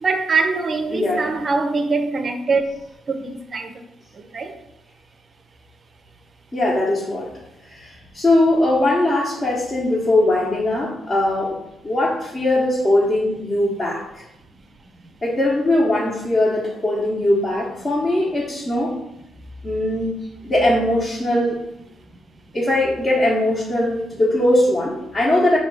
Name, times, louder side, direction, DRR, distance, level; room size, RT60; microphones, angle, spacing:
voice 1, 0.0-2.6 3.1-3.7 4.3-4.5, right 4 dB, 40° right, 7 dB, 0.5 m, -22 dB
voice 2, 0.9-1.3 6.5-7.3 7.7-11.6 11.8-14.2 15.2-18.9 19.6-20.1 20.4-21.6 22.5-25.6, left 1 dB, 30° left, -5 dB, 0.9 m, -20 dB
4.6 x 2.3 x 4.7 m, 0.84 s
cardioid pair, 90°, 0 cm